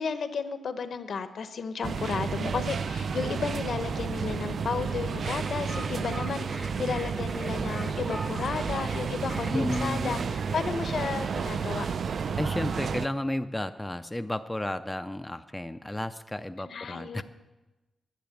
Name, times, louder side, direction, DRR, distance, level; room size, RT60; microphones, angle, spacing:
voice 1, 0.0-11.8 16.6-17.2, left 5 dB, 65° left, 10 dB, 0.9 m, -33 dB
sound 1, 1.8-13.1, right 5 dB, 60° right, 0.4 m, -31 dB
sound 2, 5.2-12.3, right 2 dB, 20° right, 0.7 m, -43 dB
voice 2, 9.5-10.3 12.4-17.2, left 1 dB, 10° left, 10 dB, 0.4 m, -32 dB
10.5 x 7.7 x 9.0 m, 1.1 s
wide cardioid pair, 125°, 0 cm